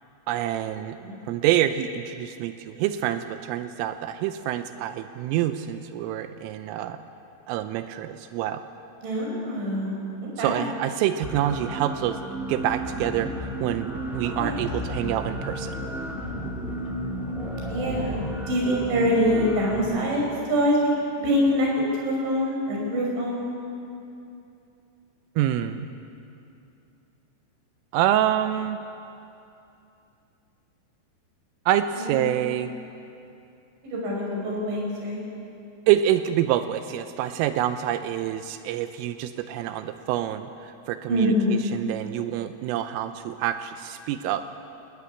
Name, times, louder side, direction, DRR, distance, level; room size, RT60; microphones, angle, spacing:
voice 1, 0.3-1.0 1.3-7.0 7.5-8.6 10.4-12.2 12.5-15.8 25.4-25.9 27.9-28.8 31.7-32.7 35.9-44.4, right 11 dB, 85° right, 9 dB, 3.3 m, -26 dB
voice 2, 9.0-10.0 10.4-10.6 14.2-14.5 15.0-15.1 17.7-20.9 21.2-21.7 22.0-23.5 32.0-32.2 33.8-35.3 41.1-41.6, equal, 65° right, -2 dB, 8.1 m, -25 dB
sound 1, 11.2-19.8, right 1 dB, ahead, 1.3 m, -33 dB
sound 2, 12.5-18.4, left 3 dB, 70° left, 5.4 m, -39 dB
21.5 x 19.5 x 9.8 m, 2.7 s
omnidirectional pair, 5.8 m